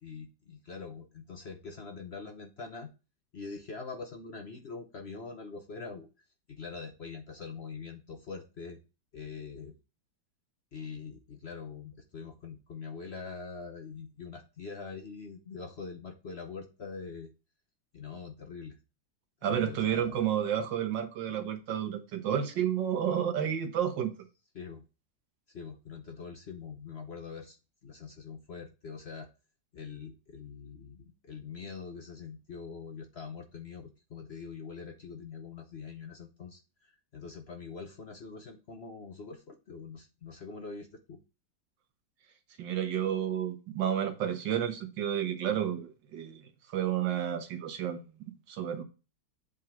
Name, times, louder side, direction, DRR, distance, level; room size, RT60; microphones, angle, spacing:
voice 1, 0.0-2.9 3.3-6.1 6.5-8.8 9.1-9.8 10.7-17.3 17.9-18.8 19.4-20.3 20.6-20.7 24.5-24.8 25.5-27.6 27.8-29.3 29.7-41.2, left 5 dB, 50° left, 0.8 m, -44 dB
voice 2, 19.4-24.1 42.6-46.4 46.7-48.0 48.5-48.8, right 9 dB, 85° right, 1.8 m, -31 dB
8.3 x 3.8 x 4.3 m
omnidirectional pair, 1.9 m